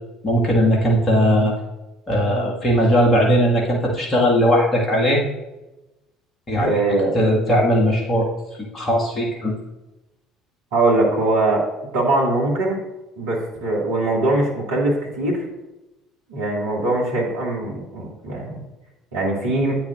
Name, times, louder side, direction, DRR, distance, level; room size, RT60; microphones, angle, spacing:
voice 1, 0.2-1.6 2.1-5.2 6.5-6.8 7.1-8.3 8.7-9.5, equal, 30° left, -2 dB, 1.9 m, -18 dB
voice 2, 6.6-7.2 10.7-11.7 11.9-12.8 13.2-15.4 16.3-18.6 19.1-19.8, right 2 dB, 70° right, -3 dB, 2.2 m, -21 dB
11.5 x 8.6 x 2.6 m, 1.0 s
figure-of-eight pair, 55°, 0 cm